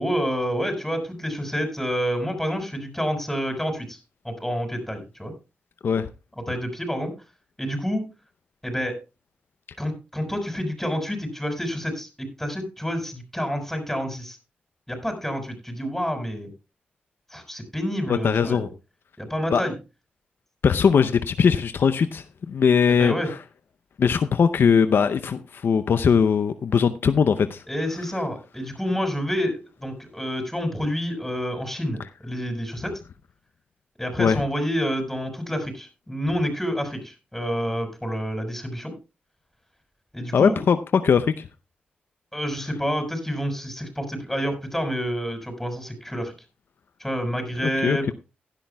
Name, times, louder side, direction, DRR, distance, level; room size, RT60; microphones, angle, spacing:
voice 1, 0.0-4.0 4.2-5.3 6.4-7.1 7.6-8.0 8.6-8.9 9.8-14.4 14.9-16.5 17.3-18.7 19.2-19.7 23.0-23.3 27.7-33.0 34.0-38.9 40.1-40.6 42.3-46.3 47.0-48.1, equal, 5° left, 5 dB, 6.6 m, -28 dB
voice 2, 18.1-18.7 19.5-19.6 20.6-23.4 24.0-27.6 34.2-34.4 40.3-41.5 47.8-48.1, left 6 dB, 65° left, 11 dB, 0.6 m, -20 dB
16.5 x 11.5 x 2.3 m, 0.29 s
cardioid pair, 60°, 4 cm